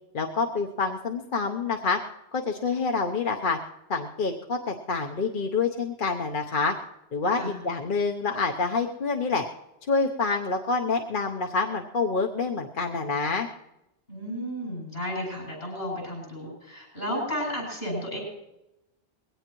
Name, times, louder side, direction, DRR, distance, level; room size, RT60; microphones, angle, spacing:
voice 1, 0.1-2.0 2.3-3.6 3.9-6.7 7.1-9.4 9.9-13.5, left 4 dB, 55° left, 2 dB, 1.1 m, -27 dB
voice 2, 7.3-7.6 14.1-18.2, equal, 85° left, -1 dB, 8.3 m, -33 dB
21.0 x 17.0 x 3.1 m, 0.88 s
omnidirectional pair, 1.0 m